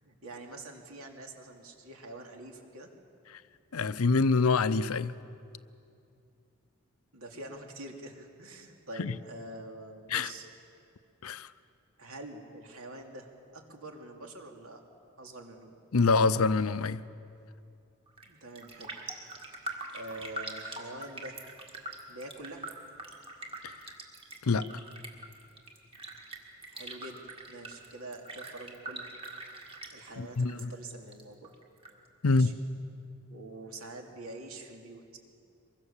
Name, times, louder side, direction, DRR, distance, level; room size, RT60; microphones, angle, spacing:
voice 1, 0.0-2.9 7.1-10.5 12.0-14.8 15.2-15.8 18.2-18.9 19.9-21.4 22.1-22.7 26.7-27.2 27.5-29.1 29.9-31.5 32.2-32.5 33.3-35.2, right 2 dB, 75° right, 2.7 m, -45 dB
voice 2, 3.7-5.1 9.0-9.1 10.1-10.3 11.2-11.5 15.9-17.0 23.6-23.7 24.4-24.7 30.2-30.7 32.2-32.5, left 4 dB, 75° left, 0.6 m, -25 dB
Raindrop, 18.1-18.3 18.6-30.6 30.9-31.9 32.3-32.4, right 2 dB, 25° right, 2.0 m, -43 dB
24.0 x 22.0 x 7.3 m
head